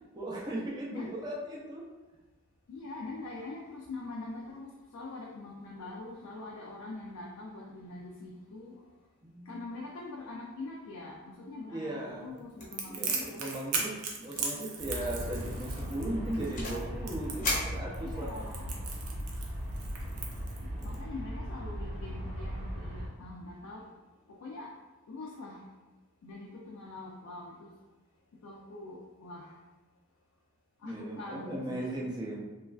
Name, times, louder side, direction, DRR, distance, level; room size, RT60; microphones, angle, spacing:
voice 1, 0.1-1.8 9.2-9.6 11.7-12.5 12.9-18.5 20.7-21.0 30.8-32.4, right 1 dB, 20° right, -4 dB, 0.4 m, -38 dB
voice 2, 2.7-8.8 9.5-13.4 15.8-16.1 18.0-18.8 20.8-23.8 24.3-24.7 25.1-25.7 26.2-27.7 28.4-29.5 30.8-32.1, left 2 dB, 70° left, -3 dB, 0.4 m, -43 dB
sound 1, 12.6-12.9 13.2-13.5 13.7-13.8 14.3-14.6 15.0-15.3 15.8-16.9 17.4-18.4, left 2 dB, 35° left, 0.6 m, -37 dB
Crackle, 12.7-21.0, right 5 dB, 80° right, 0.5 m, -37 dB
Aircraft, 14.8-23.1, equal, 50° right, 0.8 m, -38 dB
3.1 x 2.3 x 2.3 m, 1.1 s
head